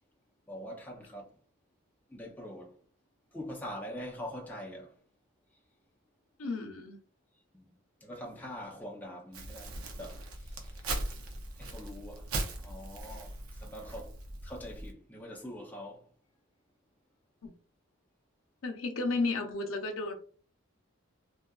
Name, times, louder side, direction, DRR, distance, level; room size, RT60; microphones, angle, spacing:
voice 1, 0.5-1.3 2.1-2.8 3.3-4.9 7.5-10.8 11.6-12.3 12.6-14.1 14.4-16.1, equal, 10° left, 0.4 m, -44 dB
voice 2, 6.4-7.0 17.4-17.5 18.6-20.2, left 3 dB, 70° left, 0.5 m, -33 dB
Crumpling crinkling, 9.3-14.9, right 2 dB, 85° right, 0.6 m, -39 dB
2.6 x 2.3 x 2.2 m
head